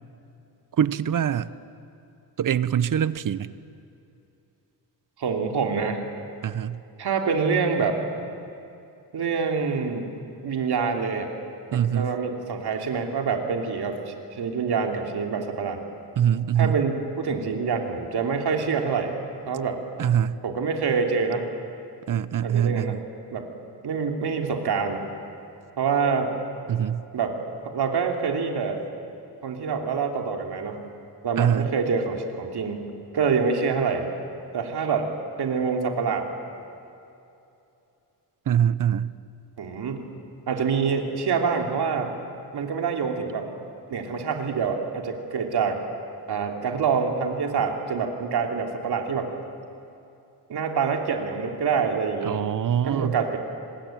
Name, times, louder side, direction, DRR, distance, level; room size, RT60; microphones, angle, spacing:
voice 1, 0.7-1.5 2.4-3.5 6.4-6.8 11.7-12.1 16.2-16.8 20.0-20.4 22.1-23.0 26.7-27.0 31.4-31.7 38.5-39.1 52.2-53.2, right 9 dB, 50° right, 16 dB, 0.8 m, -23 dB
voice 2, 5.2-6.0 7.0-8.0 9.1-10.1 10.4-11.3 11.7-15.8 16.6-19.1 19.5-19.8 20.4-21.4 22.4-23.0 23.3-23.5 23.8-25.0 25.8-26.3 27.1-27.4 27.6-28.8 29.4-30.9 31.2-34.1 34.5-35.1 35.4-36.3 39.6-40.0 40.5-42.1 42.5-43.5 43.9-45.8 46.3-49.3 50.5-52.4 52.8-53.4, right 5 dB, 65° right, 3 dB, 3.0 m, -26 dB
26.5 x 21.0 x 9.1 m, 2.7 s
wide cardioid pair, 130°, 42 cm